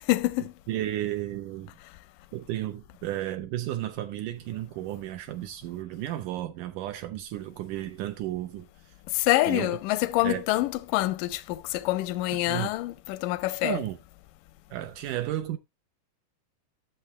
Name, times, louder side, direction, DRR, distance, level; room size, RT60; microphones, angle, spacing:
voice 1, 0.1-0.5 9.2-13.8, left 17 dB, 85° left, 2.2 m, -26 dB
voice 2, 0.7-1.7 2.3-8.7 9.5-9.8 10.2-10.4 12.5-12.7 13.6-14.0 14.7-15.6, right 13 dB, 80° right, 2.3 m, -33 dB
10.5 x 7.2 x 3.1 m
omnidirectional pair, 3.8 m